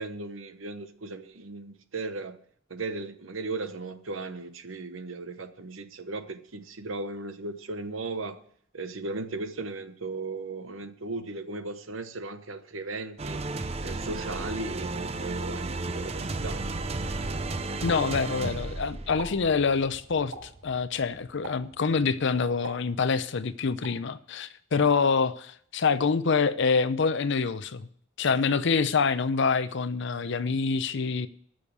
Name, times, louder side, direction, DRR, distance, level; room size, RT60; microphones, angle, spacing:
voice 1, 0.0-2.4 2.7-8.4 8.7-13.4 13.8-16.6, right 3 dB, 80° right, 1.0 m, -36 dB
sound 1, 13.2-21.7, right 2 dB, 30° right, 0.6 m, -34 dB
voice 2, 17.8-27.9 28.2-31.3, left 5 dB, 65° left, 0.6 m, -26 dB
Explosion, 19.2-19.5 20.3-20.7 21.4-21.8 22.6-23.3 23.8-24.1, right 2 dB, 65° right, 4.8 m, -42 dB
10.5 x 6.5 x 8.5 m
head